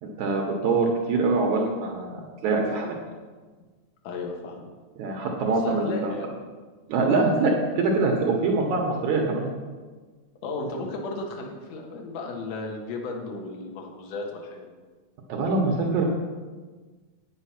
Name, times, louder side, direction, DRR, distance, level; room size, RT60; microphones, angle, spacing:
voice 1, 0.0-3.0 5.0-6.1 6.9-9.5 15.3-16.0, right 3 dB, 75° right, 0 dB, 2.4 m, -24 dB
voice 2, 4.0-4.6 5.5-6.4 10.4-14.8, left 3 dB, 65° left, 1 dB, 2.4 m, -34 dB
8.9 x 8.2 x 5.8 m, 1.4 s
omnidirectional pair, 3.5 m